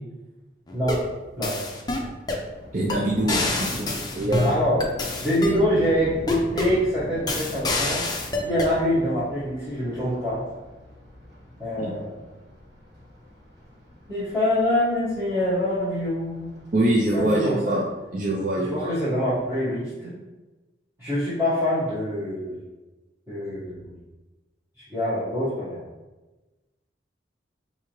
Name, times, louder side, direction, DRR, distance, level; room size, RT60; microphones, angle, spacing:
sound 1, 0.7-1.1 1.4-2.5 2.9-3.0 3.3-5.6 6.3-6.8 7.3-8.7, left 2 dB, 20° left, 0.5 m, -27 dB
voice 1, 0.7-1.0 1.4-1.6 4.4-4.9 5.2-8.0 8.4-10.4 11.6-12.1 14.1-16.5 17.1-17.8 18.5-20.2 21.0-22.6 23.3-24.0 24.9-25.8, left 1 dB, 15° right, -15 dB, 1.4 m, -25 dB
Thunder, 2.4-18.3, left 1 dB, 60° right, 1.4 m, -42 dB
voice 2, 2.7-4.5 11.8-11.9 16.7-17.8 18.1-19.0, right 1 dB, 45° right, -4 dB, 0.5 m, -24 dB
4.7 x 2.8 x 3.1 m, 1.1 s
head